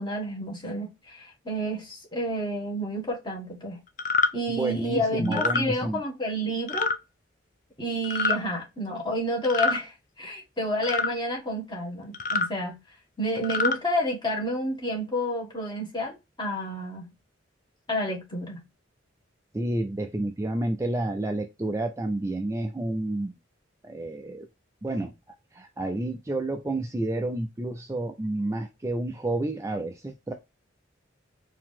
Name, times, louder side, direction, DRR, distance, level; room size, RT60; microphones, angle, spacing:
voice 1, 0.0-3.8 4.3-6.9 7.8-12.8 13.2-17.1 17.9-18.6, equal, 25° left, 1.7 m, -30 dB
sound 1, 4.0-4.3 5.3-5.6 6.7-7.0 8.0-8.4 9.4-9.8 10.8-11.1 12.1-12.5 13.4-13.8, left 4 dB, 40° left, 0.6 m, -25 dB
voice 2, 4.5-6.0 19.5-23.3 23.8-24.5 24.8-25.1 25.5-30.3, right 2 dB, 15° right, 0.4 m, -30 dB
4.6 x 2.8 x 3.6 m
head